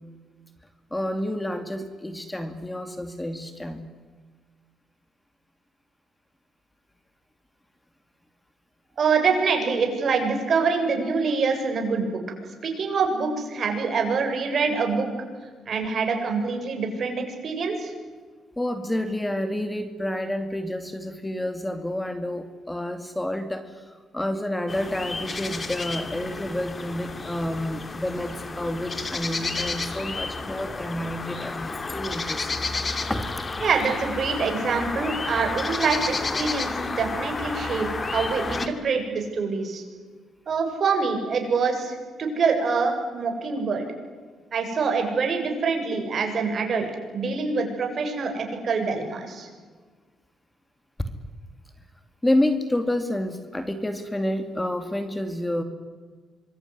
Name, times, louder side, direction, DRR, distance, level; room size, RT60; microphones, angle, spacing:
voice 1, 0.9-3.9 18.6-32.5 33.1-33.6 52.2-55.6, left 1 dB, 10° left, 8 dB, 2.5 m, -29 dB
voice 2, 9.0-12.2 12.6-15.1 15.7-17.9 33.6-39.8 40.5-43.8 44.5-46.9 47.1-49.5, right 5 dB, 50° right, 4 dB, 7.3 m, -25 dB
sound 1, 24.7-38.7, left 3 dB, 30° left, 2.7 m, -31 dB
26.0 x 22.5 x 9.9 m, 1.4 s
cardioid pair, 90°, 0 cm